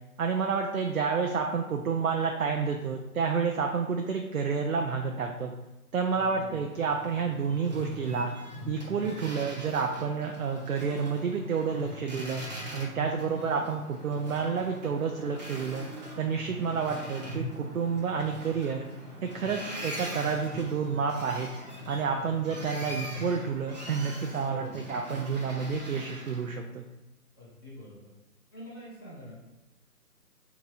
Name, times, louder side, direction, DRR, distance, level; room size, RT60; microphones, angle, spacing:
voice 1, 0.2-5.5 5.9-8.3 8.7-12.4 12.7-15.9 16.2-18.9 19.2-21.5 21.9-26.8, right 5 dB, 65° right, 3 dB, 0.5 m, -30 dB
voice 2, 2.4-2.8 6.1-6.9 9.0-9.2 11.7-11.9 12.9-13.2 16.4-16.6 19.4-19.6 22.1-22.3 24.4-24.8 27.4-28.1 28.5-29.5, left 1 dB, 15° left, -9 dB, 0.7 m, -44 dB
Boat Water vehicle, 6.7-26.5, equal, 30° right, 0.8 m, -41 dB
3.6 x 2.9 x 4.1 m, 1.0 s
figure-of-eight pair, 150°, 46 cm